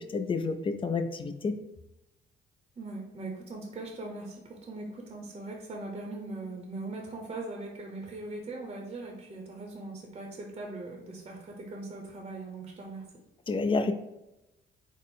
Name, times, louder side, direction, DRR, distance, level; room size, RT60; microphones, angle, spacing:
voice 1, 0.1-1.5 13.5-13.9, left 4 dB, 25° left, 8 dB, 0.3 m, -29 dB
voice 2, 2.8-13.1, right 2 dB, 30° right, 0 dB, 0.7 m, -40 dB
4.2 x 2.0 x 3.7 m, 0.93 s
cardioid pair, 90°, 20 cm